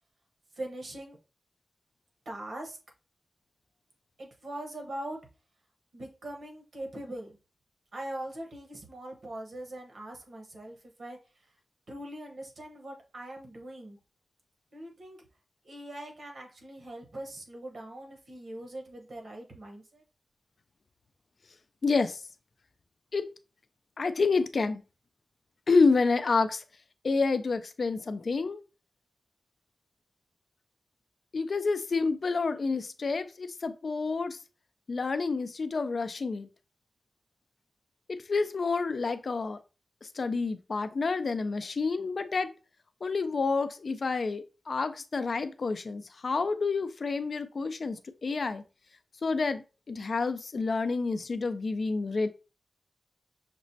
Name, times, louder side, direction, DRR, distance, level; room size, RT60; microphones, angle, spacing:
voice 1, 0.6-1.2 2.2-2.8 4.2-5.2 5.9-7.4 7.9-11.2 11.9-14.0 14.7-15.2 15.6-20.0, right 1 dB, 70° right, 2 dB, 1.0 m, -41 dB
voice 2, 21.8-22.2 23.1-23.2 24.0-24.8 25.7-26.6 27.0-28.6 31.3-34.4 34.9-36.5 38.1-39.6 40.2-42.5 43.0-48.6 49.2-52.3, left 4 dB, 55° left, 10 dB, 0.4 m, -29 dB
5.9 x 2.1 x 2.6 m, 0.32 s
wide cardioid pair, 110°, 0 cm